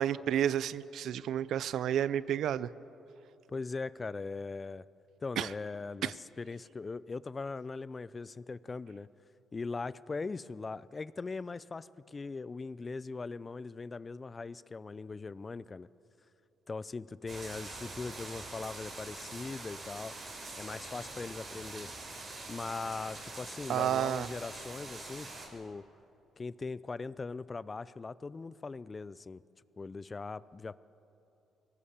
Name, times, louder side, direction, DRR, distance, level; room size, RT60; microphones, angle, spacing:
voice 1, 0.0-2.7 5.4-5.5 6.0-6.1 23.7-24.3, right 10 dB, 75° right, 18 dB, 0.5 m, -31 dB
voice 2, 3.5-4.8 5.2-9.1 9.5-15.9 16.7-20.1 20.6-21.9 22.5-25.9 26.4-29.4 29.8-30.8, left 4 dB, 30° left, 19 dB, 0.5 m, -40 dB
sound 1, 17.3-25.5, right 2 dB, 45° right, 5.5 m, -45 dB
23.0 x 18.0 x 7.3 m, 2.9 s
cardioid pair, 90°, 0 cm